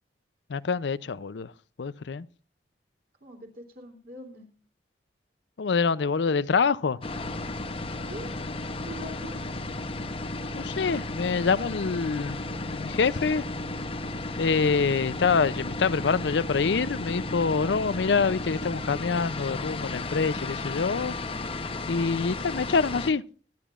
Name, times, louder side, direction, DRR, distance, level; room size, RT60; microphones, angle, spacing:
voice 1, 0.5-1.5 1.8-2.3 5.6-7.0 10.6-12.4 12.6-13.4 14.4-21.1 21.9-23.2, left 5 dB, 85° left, 0.5 m, -26 dB
voice 2, 3.2-4.4 8.0-8.4 8.9-9.4, equal, 55° right, 3.1 m, -43 dB
sound 1, 7.0-23.1, left 2 dB, 35° left, 0.9 m, -34 dB
22.5 x 10.0 x 2.4 m
head